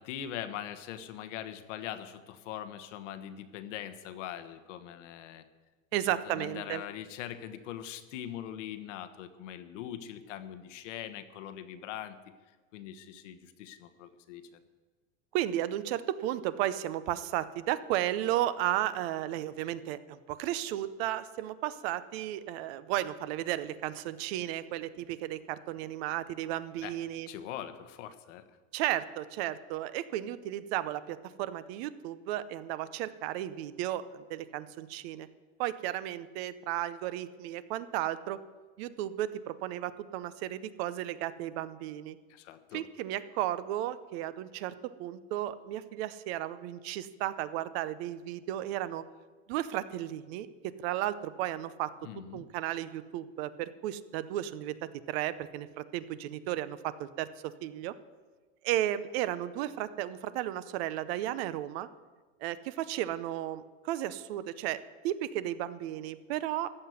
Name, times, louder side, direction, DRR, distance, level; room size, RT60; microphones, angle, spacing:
voice 1, 0.0-5.4 5.9-12.2 12.7-14.5 26.8-27.0 27.3-28.4 42.3-42.8 52.0-52.5, left 10 dB, 75° left, 11 dB, 1.2 m, -42 dB
voice 2, 5.9-6.8 15.3-27.3 28.7-35.3 35.6-38.4 38.8-42.2 42.7-49.0 49.5-51.9 52.3-57.9 58.6-61.9 62.4-66.7, right 13 dB, 55° right, 15 dB, 0.7 m, -34 dB
14.5 x 5.9 x 9.4 m, 1.3 s
supercardioid pair, 155°, 37 cm